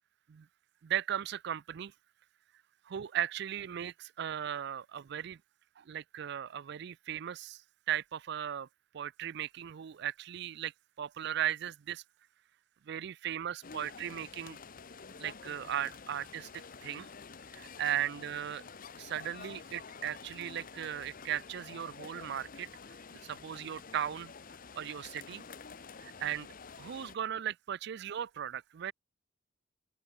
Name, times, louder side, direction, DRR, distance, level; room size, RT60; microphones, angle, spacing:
voice 1, 0.8-1.9 2.9-5.4 5.8-7.6 7.9-8.7 8.9-10.7 11.0-12.0 12.9-14.6 15.1-17.1 17.5-18.6 19.0-22.7 23.2-24.3 24.8-25.4 26.0-26.5 26.8-28.9, right 10 dB, 60° right, 0.4 m, -37 dB
sound 1, 13.6-27.2, left 5 dB, 45° left, 0.9 m, -49 dB
open air
head